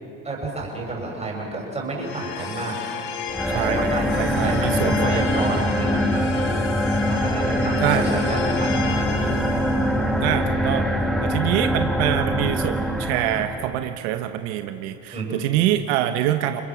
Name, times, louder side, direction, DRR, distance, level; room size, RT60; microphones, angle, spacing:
voice 1, 0.2-2.8 3.5-6.6 7.1-9.5 15.1-15.4, right 2 dB, 20° right, -1 dB, 6.8 m, -30 dB
sound 1, 2.0-13.1, left 6 dB, 80° left, 2.2 m, -33 dB
sound 2, 3.3-13.8, equal, ahead, 1.5 m, -23 dB
voice 2, 3.5-3.9 4.2-5.4 7.8-8.1 10.2-10.9 11.2-16.6, right 12 dB, 85° right, 8 dB, 1.1 m, -25 dB
29.0 x 20.5 x 6.2 m, 2.9 s
supercardioid pair, 110°, 32 cm